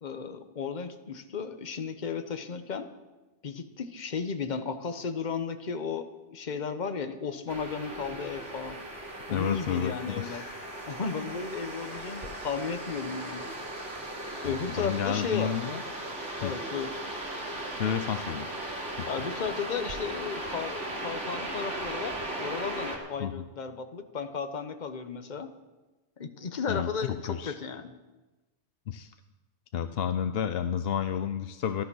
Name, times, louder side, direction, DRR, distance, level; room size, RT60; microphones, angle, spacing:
voice 1, 0.0-2.9 3.4-8.8 9.3-10.4 10.9-13.5 14.3-15.5 16.4-16.9 19.1-25.5 26.2-27.9, left 5 dB, 40° left, 8 dB, 1.0 m, -34 dB
sound 1, 7.5-23.0, right 1 dB, 70° right, 2.7 m, -37 dB
voice 2, 9.3-10.7 14.4-15.8 16.4-16.5 17.8-18.5 19.0-19.1 23.2-23.4 26.7-27.5 28.9-29.1 29.7-31.8, left 8 dB, 60° left, 10 dB, 0.8 m, -31 dB
14.0 x 12.5 x 6.2 m, 1.1 s
omnidirectional pair, 1.2 m